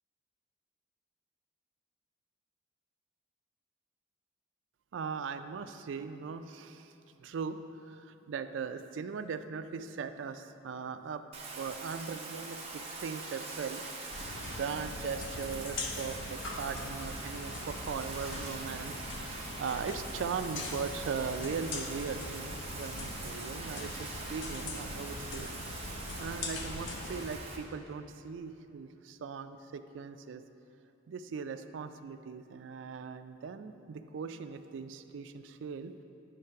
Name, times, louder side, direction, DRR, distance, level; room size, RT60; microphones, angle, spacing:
voice 1, 4.9-6.9 7.2-7.6 7.9-11.2 11.6-13.8 14.5-25.5 26.2-30.4 31.1-35.9, right 5 dB, 75° right, 9 dB, 0.3 m, -39 dB
Bathtub (filling or washing), 11.3-27.6, right 3 dB, 35° right, 0.9 m, -43 dB
sound 1, 14.1-27.4, left 2 dB, 75° left, 0.6 m, -41 dB
9.6 x 3.2 x 5.7 m, 2.7 s
head